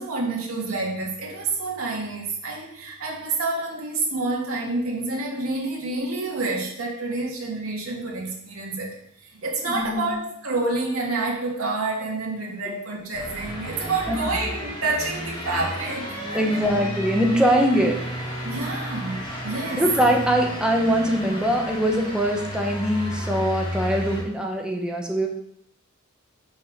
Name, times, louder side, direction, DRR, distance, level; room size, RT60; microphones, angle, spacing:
voice 1, 0.0-16.7 18.4-19.8, right 3 dB, 85° right, -1 dB, 1.8 m, -28 dB
voice 2, 9.7-10.1 12.7-12.8 14.1-14.2 16.3-18.0 19.7-25.3, equal, 5° right, 1 dB, 1.0 m, -22 dB
sound 1, 13.1-24.2, equal, 25° left, 2.1 m, -32 dB
5.5 x 5.4 x 6.0 m, 0.70 s
head